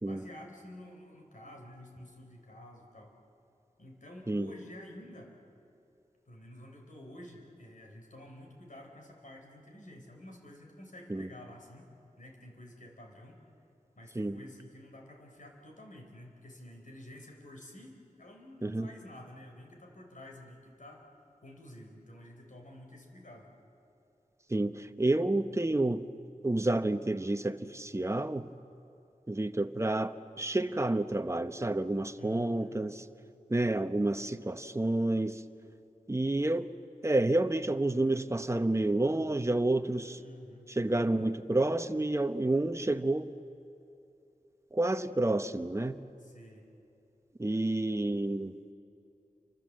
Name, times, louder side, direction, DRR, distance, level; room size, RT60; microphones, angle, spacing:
voice 1, 0.0-3.1 3.8-5.3 6.3-11.9 12.2-13.4 14.0-21.0 21.4-23.5 32.2-32.7 40.2-40.7 46.2-46.6, left 1 dB, 65° left, 2 dB, 4.5 m, -50 dB
voice 2, 24.5-26.0 26.4-28.5 29.3-33.0 33.5-35.4 36.1-36.7 37.0-40.2 40.7-43.3 44.7-46.0 47.4-48.5, right 2 dB, 20° right, 9 dB, 1.0 m, -29 dB
29.0 x 25.0 x 7.7 m, 2.7 s
wide cardioid pair, 85°, 14 cm